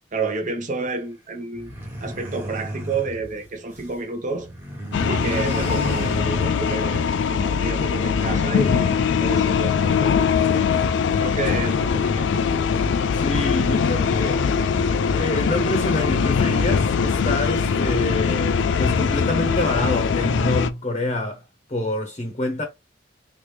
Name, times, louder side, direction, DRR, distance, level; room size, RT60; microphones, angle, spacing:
voice 1, 0.1-1.7 2.0-4.5 5.1-10.2 10.5-10.7 11.2-12.4, right 3 dB, 45° right, 0.8 m, -30 dB
sound 1, 1.5-4.0 4.3-6.8, equal, 10° right, 1.0 m, -33 dB
sound 2, 4.9-20.7, left 6 dB, 75° left, 0.3 m, -21 dB
voice 2, 13.1-14.5 15.1-21.4 21.7-22.6, left 1 dB, 30° left, 0.8 m, -27 dB
3.2 x 2.5 x 3.1 m
head